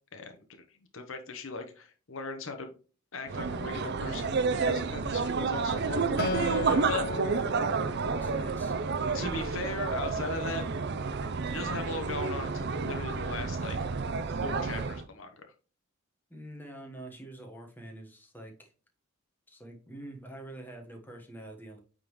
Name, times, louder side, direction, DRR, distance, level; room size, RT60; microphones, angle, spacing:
voice 1, 0.9-2.7 3.1-7.0 8.2-8.3 9.1-10.6 11.5-13.8 14.4-15.4, left 3 dB, 60° left, 5 dB, 0.9 m, -38 dB
sound 1, 3.3-15.0, right 4 dB, 50° right, 0.5 m, -30 dB
Acoustic guitar, 6.2-9.6, left 2 dB, 45° left, 0.5 m, -37 dB
voice 2, 6.7-8.7 16.3-18.7 19.5-21.8, right 1 dB, 10° left, 2 dB, 1.2 m, -46 dB
8.7 x 3.8 x 3.0 m, 0.36 s
head